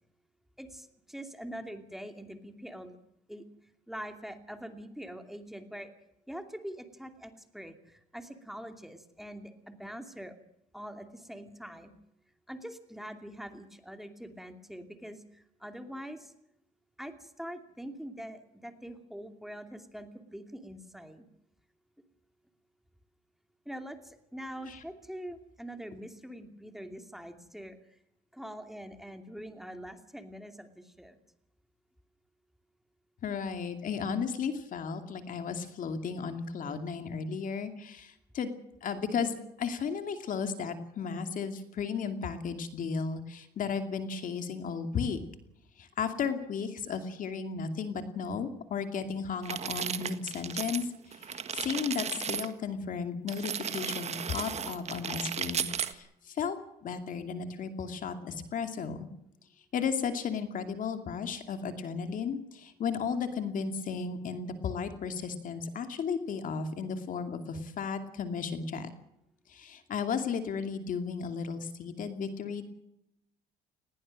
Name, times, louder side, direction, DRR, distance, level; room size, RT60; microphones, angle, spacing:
voice 1, 0.6-3.0 3.3-3.5 3.9-5.9 6.3-10.3 10.7-11.9 12.5-16.3 17.0-21.3 23.7-27.8 28.3-31.2, equal, ahead, 6 dB, 2.6 m, -44 dB
voice 2, 33.2-38.5 38.8-45.2 45.8-56.6 56.8-59.1 59.7-68.9 69.5-72.6, left 6 dB, 55° left, 7 dB, 2.6 m, -34 dB
sound 1, 49.4-50.9 51.1-52.5 53.3-55.9, right 7 dB, 40° right, 1.6 m, -35 dB
20.0 x 17.5 x 7.7 m, 0.81 s
cardioid pair, 110°, 17 cm